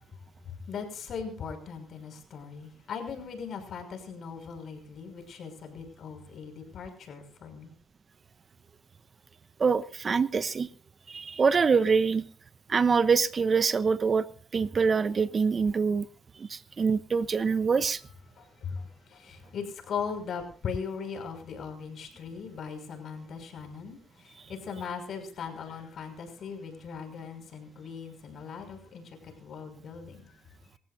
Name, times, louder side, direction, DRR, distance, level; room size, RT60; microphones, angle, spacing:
voice 1, 0.7-7.7 18.4-30.3, left 6 dB, 65° left, 6 dB, 5.9 m, -39 dB
voice 2, 9.6-10.7 11.1-12.2 12.7-14.2 14.5-16.1 16.4-18.0, right 5 dB, 40° right, 15 dB, 0.9 m, -25 dB
27.0 x 15.0 x 2.7 m, 0.40 s
cardioid pair, 90°, 0 cm